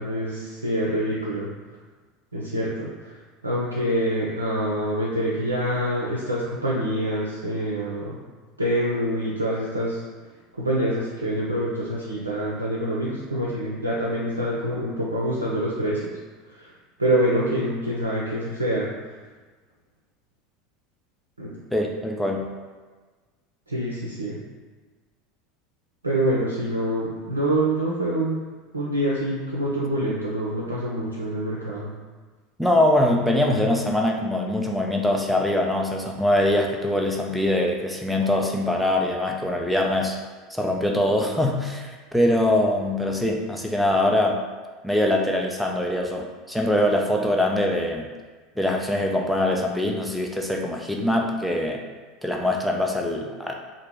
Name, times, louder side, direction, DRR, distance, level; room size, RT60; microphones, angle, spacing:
voice 1, 0.0-1.5 2.3-3.1 3.4-8.2 8.6-10.0 10.6-16.0 16.6-16.7 17.0-18.9 21.4-21.5 23.7-24.4 26.0-28.4 28.7-31.9, right 1 dB, 90° right, -5 dB, 0.4 m, -26 dB
voice 2, 21.7-22.5 32.6-40.2 40.5-44.4 44.8-48.1 48.6-51.8 52.2-53.5, left 1 dB, ahead, 0 dB, 0.5 m, -23 dB
2.8 x 2.5 x 3.4 m, 1.4 s
figure-of-eight pair, 75°, 0 cm